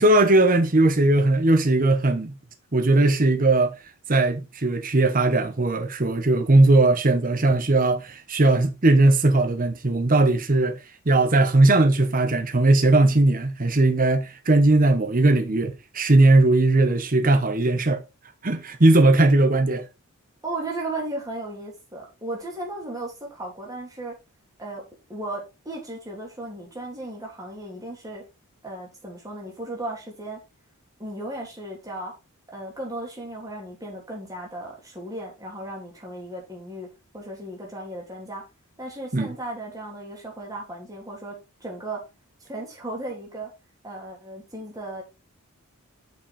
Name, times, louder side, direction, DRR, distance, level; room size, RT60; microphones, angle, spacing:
voice 1, 0.0-2.4 2.7-3.7 4.1-10.8 11.1-18.0 18.4-19.9 39.1-39.3, right 2 dB, 40° right, 0.9 m, -19 dB
voice 2, 20.4-24.1 24.6-24.8 25.1-28.2 28.6-30.4 31.0-32.1 32.5-36.9 37.1-38.4 38.8-42.0 42.5-43.5 43.8-45.0, right 2 dB, 15° right, 3.4 m, -35 dB
7.4 x 6.0 x 4.1 m
head